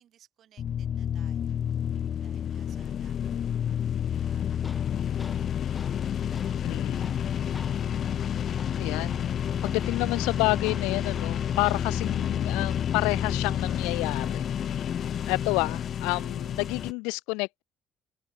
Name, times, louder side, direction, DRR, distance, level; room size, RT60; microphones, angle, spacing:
voice 1, 0.0-1.6 2.2-5.0 5.3-7.2, right 10 dB, 55° right, 7.7 m, -63 dB
sound 1, 0.6-16.9, left 9 dB, 50° left, 0.4 m, -29 dB
Tools, 4.1-12.1, left 3 dB, 20° left, 4.4 m, -51 dB
voice 2, 6.6-7.2 8.8-9.3 9.6-15.0 15.3-17.6, left 29 dB, 70° left, 1.3 m, -30 dB
open air
hypercardioid pair, 55°, 0 cm